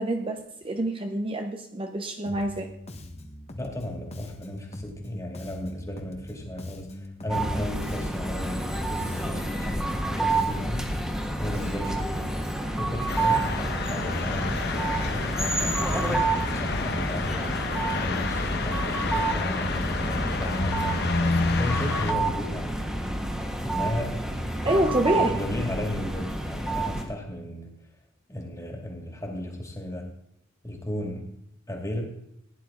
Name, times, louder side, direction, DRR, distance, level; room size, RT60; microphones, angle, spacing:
voice 1, 0.0-2.7 24.6-25.4, right 1 dB, 25° right, 5 dB, 0.8 m, -27 dB
Bass guitar, 2.3-12.1, left 1 dB, 30° left, 1.3 m, -43 dB
voice 2, 3.6-11.0 11.4-12.3 12.7-13.6 13.8-17.5 18.0-20.8 21.1-22.9 23.6-24.2 24.6-27.7 28.3-30.1 30.6-31.3 31.7-32.0, left 1 dB, 15° left, 1 dB, 2.4 m, -35 dB
sound 1, 7.3-27.0, right 2 dB, 5° right, 1.6 m, -29 dB
sound 2, 13.1-22.1, left 3 dB, 55° left, 1.2 m, -29 dB
16.5 x 10.0 x 3.8 m, 0.78 s
head